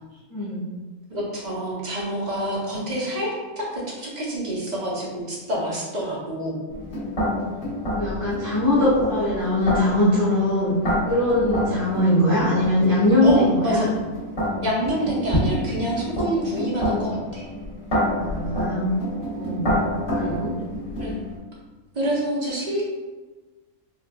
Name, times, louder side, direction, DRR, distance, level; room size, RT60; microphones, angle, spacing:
voice 1, 0.3-0.6 7.9-10.8 11.0-13.9 14.4-14.6 18.1-18.9 19.3-19.7 20.1-20.5, left 1 dB, 90° right, -12 dB, 1.9 m, -21 dB
voice 2, 1.1-6.6 13.2-13.9 14.6-17.5 21.0-21.2 21.9-22.8, right 1 dB, 40° right, -5 dB, 0.7 m, -27 dB
sound 1, 6.7-21.4, equal, 50° left, 1.7 m, -28 dB
5.1 x 2.3 x 2.2 m, 1.3 s
omnidirectional pair, 1.5 m